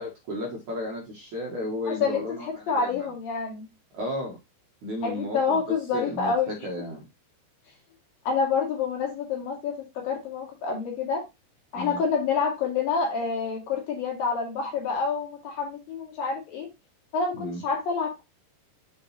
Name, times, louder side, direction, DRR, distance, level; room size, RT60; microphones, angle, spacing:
voice 1, 0.0-3.1 3.9-4.4 4.8-5.6 5.9-7.1 11.7-12.0 17.3-17.6, left 1 dB, 55° right, -1 dB, 2.5 m, -34 dB
voice 2, 1.9-3.7 5.0-6.6 8.3-11.2 11.7-16.7 17.1-18.2, left 5 dB, 55° left, 0 dB, 3.5 m, -28 dB
7.1 x 5.1 x 4.2 m, 0.24 s
omnidirectional pair, 5.2 m